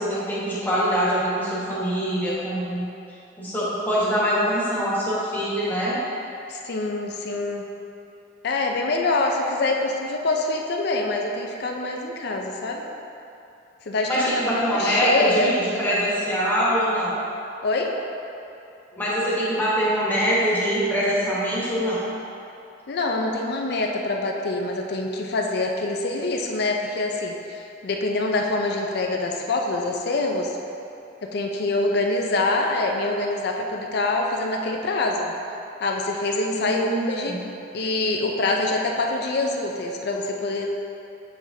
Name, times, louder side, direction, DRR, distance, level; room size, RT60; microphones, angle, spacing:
voice 1, 0.0-2.9 3.4-6.0 14.1-17.2 19.0-22.0 36.5-37.4, equal, 10° left, -8 dB, 1.3 m, -24 dB
voice 2, 6.5-7.6 8.4-12.8 13.8-15.7 17.6-17.9 22.9-30.6 31.2-35.3 35.8-37.4 37.7-40.7, left 2 dB, 60° left, 1 dB, 0.5 m, -25 dB
7.2 x 5.0 x 2.7 m, 2.7 s
head